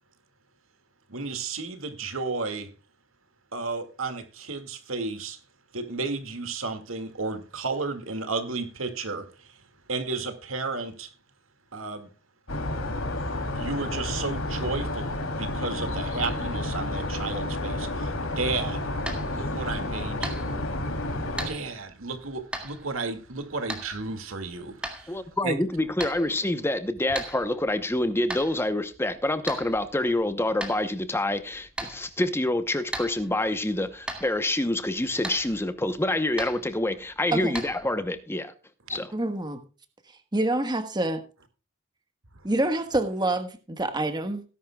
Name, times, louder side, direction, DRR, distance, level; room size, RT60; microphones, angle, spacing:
voice 1, 1.1-2.7 3.5-5.4 5.7-9.6 9.9-11.1 11.7-12.1 13.5-18.9 19.3-20.5 21.5-25.6, right 3 dB, 75° right, 2.1 m, -33 dB
sound 1, 12.5-21.5, left 1 dB, 80° left, 3.0 m, -30 dB
sound 2, 18.5-38.2, right 1 dB, 5° right, 2.3 m, -41 dB
voice 2, 25.1-38.5 38.9-39.1, left 1 dB, 10° left, 0.8 m, -27 dB
voice 3, 38.9-39.6 40.3-41.2 42.4-44.4, right 2 dB, 20° right, 1.4 m, -27 dB
18.0 x 11.0 x 2.3 m
head